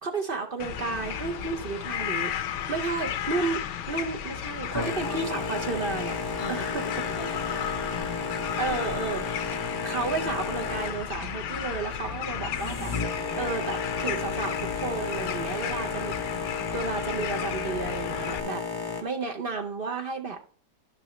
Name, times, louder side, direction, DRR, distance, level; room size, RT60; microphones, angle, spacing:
voice 1, 0.0-2.3 2.7-6.1 6.5-6.8 7.6-7.7 8.6-12.9 13.3-16.4 16.7-18.6 19.0-20.4, right 4 dB, 45° right, 4 dB, 0.7 m, -32 dB
sound 1, 0.6-18.4, left 9 dB, 85° left, 1.3 m, -34 dB
voice 2, 4.7-5.5 6.4-8.3, left 5 dB, 40° left, 5 dB, 1.0 m, -41 dB
Boat Water vehicle, 4.7-19.0, left 4 dB, 20° left, 0.6 m, -33 dB
11.0 x 6.0 x 3.1 m, 0.43 s
omnidirectional pair, 1.8 m